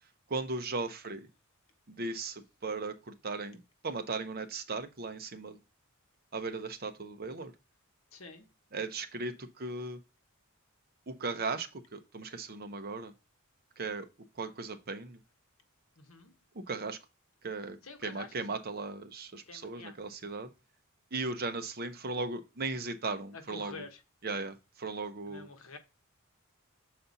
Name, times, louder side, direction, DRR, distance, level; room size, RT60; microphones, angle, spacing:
voice 1, 0.3-1.3 1.9-5.6 6.3-7.5 8.7-10.0 11.1-13.1 13.8-14.1 14.4-15.2 16.5-17.0 17.4-17.8 18.0-20.5 21.1-23.9 24.2-25.5, right 3 dB, 45° right, 0.8 m, -37 dB
voice 2, 8.1-8.4 16.0-16.3 17.8-18.6 19.5-20.0 23.3-24.0 25.2-25.8, left 4 dB, 65° left, 1.1 m, -48 dB
6.8 x 4.3 x 4.0 m
head